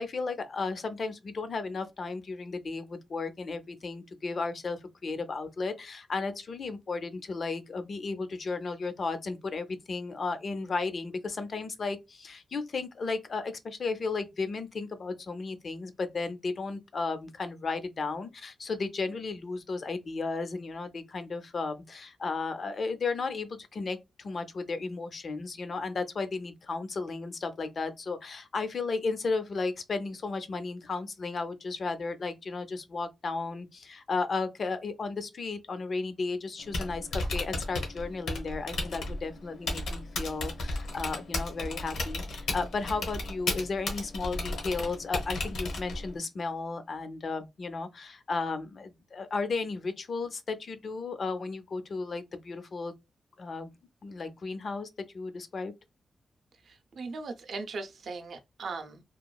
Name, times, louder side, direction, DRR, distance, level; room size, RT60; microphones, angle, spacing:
voice 1, 0.0-52.9 53.4-53.7 54.0-54.9 55.1-55.7, left 4 dB, 45° left, 0.4 m, -34 dB
Typing, 36.6-46.2, left 2 dB, 80° left, 0.9 m, -34 dB
voice 2, 56.6-59.0, right 4 dB, 65° right, 0.5 m, -39 dB
2.9 x 2.3 x 2.2 m
wide cardioid pair, 155°, 0 cm